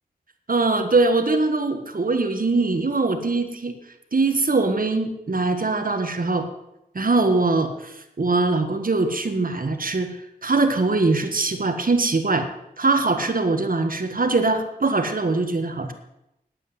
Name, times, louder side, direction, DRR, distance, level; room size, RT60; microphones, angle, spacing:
voice 1, 0.5-3.8 4.1-6.5 6.9-12.5 12.8-15.9, right 3 dB, 60° right, 6 dB, 1.5 m, -22 dB
10.0 x 8.9 x 8.0 m, 0.88 s
wide cardioid pair, 80°, 16 cm